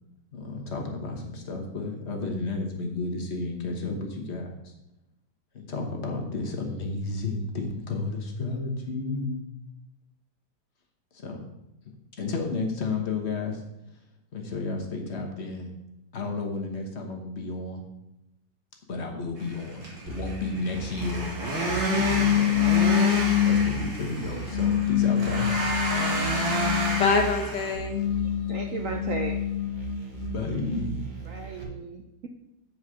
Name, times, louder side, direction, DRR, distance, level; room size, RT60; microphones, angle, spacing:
voice 1, 0.3-4.7 5.5-9.4 11.1-11.4 12.2-13.6 14.3-15.7 16.1-17.8 18.9-23.1 23.4-25.5 30.1-31.0, left 3 dB, 40° left, 2 dB, 1.3 m, -32 dB
sound 1, 19.4-27.7, right 2 dB, 85° right, 2.6 m, -30 dB
sound 2, 20.1-31.6, right 4 dB, 30° right, 1.3 m, -38 dB
sound 3, 21.8-23.9 24.5-27.2 27.8-30.0, left 10 dB, 90° left, 1.6 m, -25 dB
voice 2, 26.0-28.0, left 4 dB, 75° left, 3 dB, 1.8 m, -27 dB
voice 3, 28.2-29.4 31.2-32.3, right 5 dB, 65° right, 4 dB, 0.8 m, -36 dB
7.2 x 4.8 x 6.2 m, 0.88 s
omnidirectional pair, 2.0 m